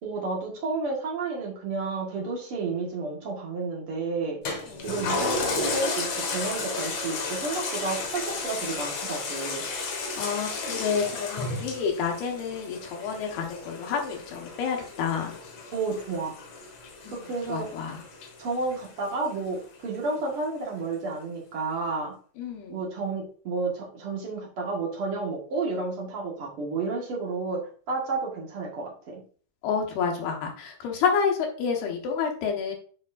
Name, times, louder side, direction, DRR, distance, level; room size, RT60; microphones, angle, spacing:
voice 1, 0.0-4.4 4.8-9.7 15.7-16.3 17.2-17.7 18.4-22.1 22.7-27.6 27.9-29.2, right 3 dB, 50° right, -2 dB, 1.9 m, -31 dB
Toilet flush, 4.5-19.3 19.7-19.8, left 3 dB, 60° left, 2.1 m, -33 dB
voice 2, 10.2-15.3 17.0-18.0 22.4-22.8 29.6-32.7, left 6 dB, 85° left, 1 dB, 3.3 m, -29 dB
9.2 x 4.8 x 2.5 m, 0.43 s
omnidirectional pair, 4.3 m